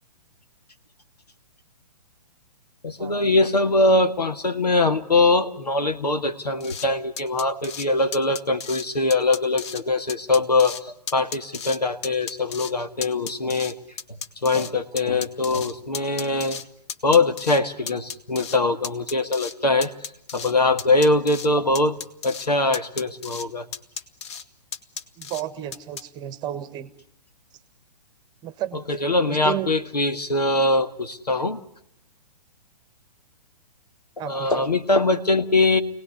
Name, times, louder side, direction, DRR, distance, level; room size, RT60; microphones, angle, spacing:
voice 1, 2.8-13.8 14.4-16.6 17.0-19.9 20.3-21.9 22.2-23.7 28.7-31.6 34.2-35.8, left 2 dB, 80° left, 8 dB, 1.8 m, -22 dB
sound 1, 6.6-6.9 7.2-7.9 8.1-8.9 9.1-9.8 10.1-10.8 11.1-11.8 12.0-12.7 13.0-14.7 15.0-16.6 16.9-17.6 17.9-18.6 18.8-19.5 19.8-20.5 20.8-21.5 21.8-22.5 22.7-23.5 23.7-24.4 24.7-25.4 25.7-26.0, left 7 dB, 45° left, 1.1 m, -34 dB
voice 2, 25.2-26.9 28.4-28.8 29.3-29.7 34.2-34.6, right 12 dB, 20° right, 13 dB, 1.3 m, -32 dB
26.0 x 18.5 x 9.5 m, 0.79 s
figure-of-eight pair, 120°, 20 cm